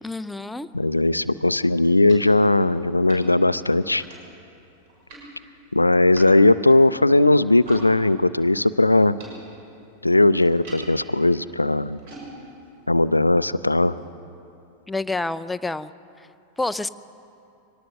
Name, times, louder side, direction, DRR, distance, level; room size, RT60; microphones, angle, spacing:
voice 1, 0.0-0.7 14.9-15.9 16.6-16.9, left 2 dB, 5° left, 12 dB, 0.6 m, -28 dB
voice 2, 0.7-4.0 5.7-9.2 10.0-12.0 12.9-14.0, left 2 dB, 85° left, 16 dB, 0.4 m, -18 dB
sound 1, 1.4-7.9 8.1-14.0, right 1 dB, 50° right, 6.5 m, -47 dB
23.5 x 18.5 x 6.6 m, 2.7 s
figure-of-eight pair, 90°, 0 cm